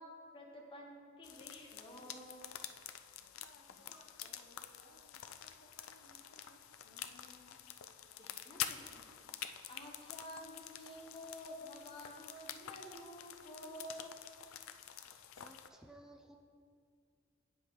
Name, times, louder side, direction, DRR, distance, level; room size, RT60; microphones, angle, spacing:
voice 1, 0.0-2.5 3.9-4.4 8.2-9.1 9.7-14.2, equal, 25° left, -1 dB, 1.0 m, -51 dB
sound 1, 1.2-15.7, left 10 dB, 80° left, 0.4 m, -48 dB
voice 2, 3.2-8.3, left 1 dB, 60° left, 1 dB, 0.9 m, -66 dB
voice 3, 14.9-16.4, right 1 dB, 5° right, 3 dB, 0.5 m, -59 dB
8.6 x 7.3 x 3.1 m, 2.2 s
head